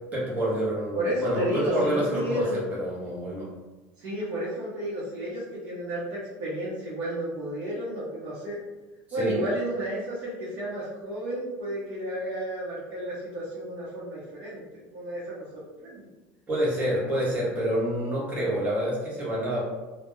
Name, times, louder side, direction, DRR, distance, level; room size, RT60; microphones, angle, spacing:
voice 1, 0.1-3.5 9.2-9.5 16.5-19.6, equal, 20° right, -6 dB, 0.8 m, -28 dB
voice 2, 0.9-2.6 4.0-8.6 9.1-16.1, right 1 dB, 55° right, -9 dB, 0.8 m, -32 dB
2.2 x 2.1 x 3.0 m, 1.2 s
cardioid pair, 165°, 7 cm